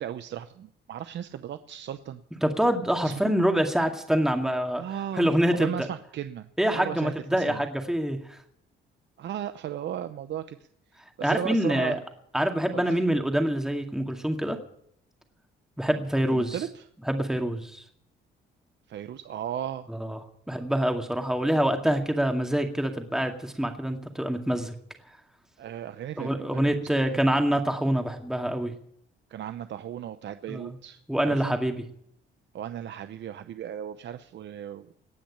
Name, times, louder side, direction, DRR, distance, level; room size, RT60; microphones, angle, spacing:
voice 1, 0.0-2.2 3.0-3.1 4.8-7.6 9.2-10.6 11.2-11.9 12.7-13.0 16.3-16.8 18.9-19.9 25.6-27.2 29.3-31.6 32.5-34.9, right 10 dB, 65° right, 10 dB, 0.8 m, -36 dB
voice 2, 2.4-4.8 5.1-5.9 6.6-8.4 11.2-12.0 12.3-14.6 15.8-16.6 17.1-17.8 19.9-20.2 20.5-24.7 26.2-28.7 30.5-30.8 31.1-31.8, right 1 dB, 5° right, 4 dB, 2.1 m, -26 dB
18.5 x 6.3 x 10.0 m, 0.69 s
cardioid pair, 90°, 20 cm